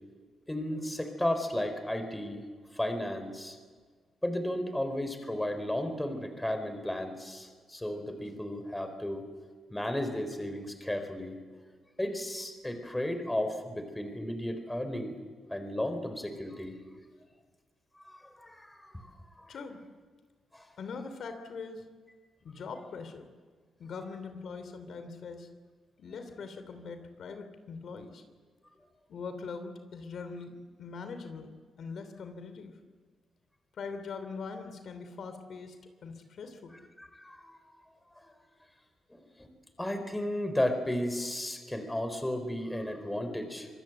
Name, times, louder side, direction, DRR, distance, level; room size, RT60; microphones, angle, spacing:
voice 1, 0.5-2.4 2.7-3.6 4.2-9.2 9.7-11.3 12.0-15.1 15.5-16.8 18.0-19.1 19.4-19.6 20.5-20.7 37.0-37.6 38.2-38.3 39.1-39.5 39.8-43.7, left 1 dB, 10° left, 8 dB, 4.2 m, -34 dB
voice 2, 19.5-19.8 20.8-21.8 22.4-23.3 23.8-25.5 26.0-28.2 29.1-32.7 33.8-35.8 36.0-36.8, left 4 dB, 65° left, 8 dB, 2.9 m, -42 dB
26.0 x 20.5 x 8.0 m, 1.5 s
cardioid pair, 90°, 0 cm